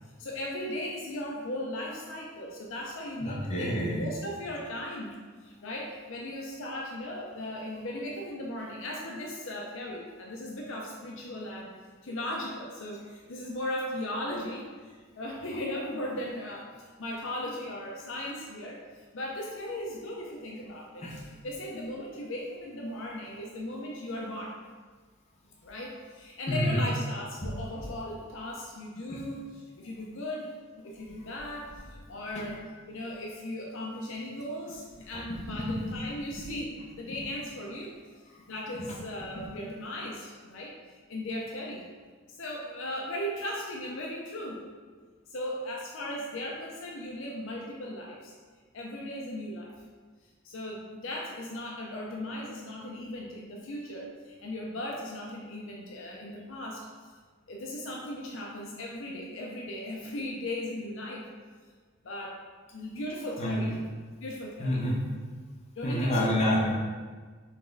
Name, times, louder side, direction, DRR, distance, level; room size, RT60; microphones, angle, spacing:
voice 1, 0.2-5.1 5.4-11.7 12.0-18.8 19.1-21.1 21.4-24.6 25.6-30.5 30.8-37.9 38.5-40.7 41.1-41.9 42.3-44.6 45.3-48.3 48.7-49.8 50.4-56.9 57.5-61.3 62.0-62.4 62.7-63.7 64.2-64.8 65.8-66.3, left 1 dB, 65° left, -1 dB, 0.6 m, -37 dB
voice 2, 3.2-4.0 21.0-21.2 26.5-26.8 29.1-29.2 35.1-36.0 38.7-38.8 39.4-39.5 63.4-63.7 64.6-65.0 65.8-66.7, equal, 30° left, -3 dB, 0.8 m, -28 dB
4.1 x 3.4 x 3.8 m, 1.5 s
head